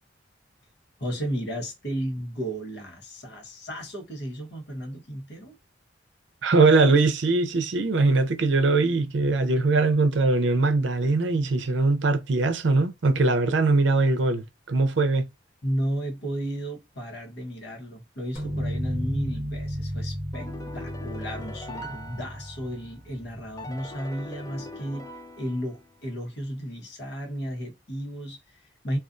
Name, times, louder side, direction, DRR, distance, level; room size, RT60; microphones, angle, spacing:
voice 1, 1.0-5.6 15.6-20.5 20.7-25.1 25.4-29.0, equal, 60° left, 1.0 m, -33 dB
voice 2, 6.4-15.3, right 3 dB, 80° right, 0.5 m, -21 dB
sound 1, 18.3-23.9, equal, 40° left, 1.4 m, -34 dB
sound 2, 20.3-23.0 23.6-26.1, left 1 dB, 20° left, 0.4 m, -42 dB
2.5 x 2.4 x 2.4 m
head